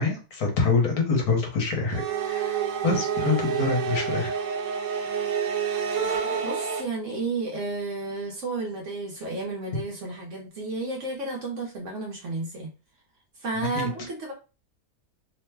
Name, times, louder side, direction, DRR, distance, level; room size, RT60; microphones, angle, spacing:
voice 1, 0.0-2.6 2.8-4.3 13.6-13.9, left 4 dB, 65° left, 1 dB, 1.3 m, -25 dB
sound 1, 1.9-6.8, right 6 dB, 75° right, 1.2 m, -28 dB
voice 2, 6.4-12.7 13.4-14.3, right 3 dB, 60° right, 0 dB, 0.9 m, -32 dB
3.0 x 2.1 x 3.3 m, 0.32 s
omnidirectional pair, 1.7 m